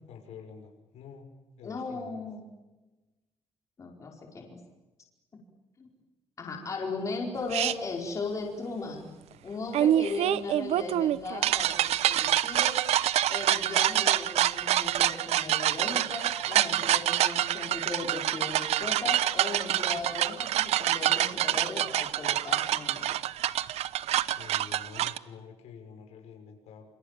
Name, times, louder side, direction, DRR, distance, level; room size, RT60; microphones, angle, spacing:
voice 1, 0.1-1.3 1.6-2.3 24.3-26.9, left 6 dB, 80° left, 4 dB, 6.3 m, -47 dB
voice 2, 1.6-2.4 3.8-4.6 5.8-5.9 6.4-9.1 9.4-12.8 13.3-23.1, left 3 dB, 30° left, 1 dB, 4.7 m, -37 dB
sound 1, 7.5-7.7 9.7-25.2, right 12 dB, 75° right, 0.9 m, -26 dB
28.0 x 27.0 x 7.4 m, 1.1 s
cardioid pair, 180°, 11 cm